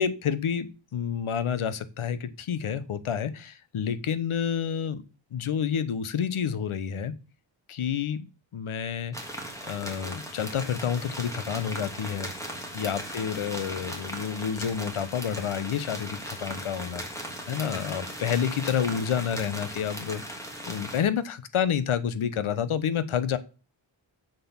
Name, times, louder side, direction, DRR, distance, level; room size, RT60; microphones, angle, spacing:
voice 1, 0.0-5.0 5.3-7.1 7.7-8.3 8.5-9.2 9.6-12.3 12.7-20.4 20.7-23.4, left 8 dB, 85° left, 1.1 m, -29 dB
sound 1, 9.1-21.0, equal, 5° left, 2.7 m, -38 dB
7.8 x 6.8 x 7.2 m
wide cardioid pair, 120°, 48 cm